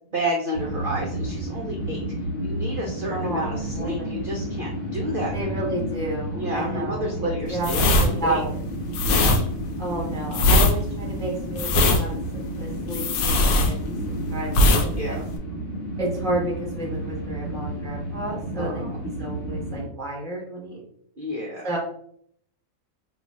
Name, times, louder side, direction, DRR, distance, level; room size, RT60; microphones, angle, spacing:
voice 1, 0.1-2.0 2.4-5.3 6.3-8.4 9.0-9.4 15.0-15.2 18.6-19.0 21.2-21.7, equal, 55° right, -2 dB, 0.6 m, -30 dB
sound 1, 0.5-19.9, right 1 dB, 50° left, 0.9 m, -31 dB
voice 2, 3.1-4.2 5.3-7.1 7.5-8.6 9.8-12.2 12.6-15.2 16.0-20.8 21.6-21.8, right 1 dB, 5° left, -3 dB, 0.5 m, -31 dB
sound 2, 7.6-14.2 14.5-14.9 15.1-15.4, left 1 dB, 75° left, 1.0 m, -20 dB
2.5 x 2.4 x 4.1 m, 0.66 s
omnidirectional pair, 1.6 m